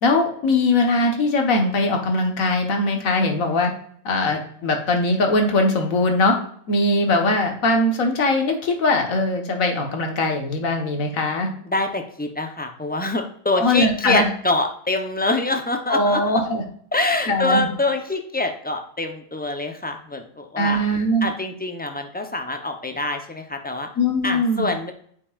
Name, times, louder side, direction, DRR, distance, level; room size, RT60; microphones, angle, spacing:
voice 1, 0.0-3.7 4.0-6.4 6.7-11.5 13.5-14.3 15.9-16.6 17.3-17.7 20.6-21.3 24.0-24.7, left 2 dB, 85° left, 4 dB, 1.6 m, -21 dB
voice 2, 11.6-16.4 16.9-20.8 21.2-23.9 24.2-24.9, left 2 dB, 15° left, 5 dB, 0.4 m, -25 dB
8.5 x 5.3 x 2.4 m, 0.62 s
omnidirectional pair, 1.4 m